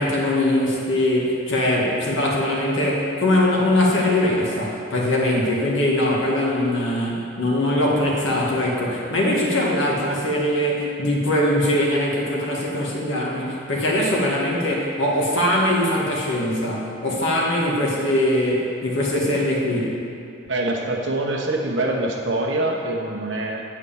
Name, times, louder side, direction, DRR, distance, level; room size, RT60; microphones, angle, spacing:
voice 1, 0.0-20.0, left 1 dB, 90° left, -4 dB, 1.9 m, -21 dB
voice 2, 20.4-23.6, right 2 dB, 75° right, 0 dB, 1.1 m, -24 dB
8.4 x 4.8 x 7.2 m, 2.5 s
head